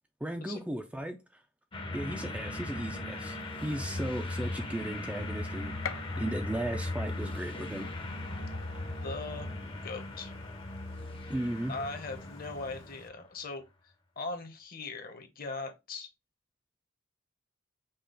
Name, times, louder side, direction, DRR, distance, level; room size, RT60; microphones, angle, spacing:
voice 1, 0.2-1.2 1.9-7.9 11.3-11.7, right 1 dB, 5° right, 0.4 m, -36 dB
sound 1, 1.7-13.1, left 2 dB, 25° left, 0.7 m, -38 dB
Gunshot gunfire, 3.1-13.1, left 7 dB, 70° left, 0.5 m, -50 dB
voice 2, 9.0-9.5 9.8-10.3 11.7-13.7 14.2-16.1, left 3 dB, 45° left, 1.0 m, -39 dB
5.4 x 2.4 x 3.8 m
head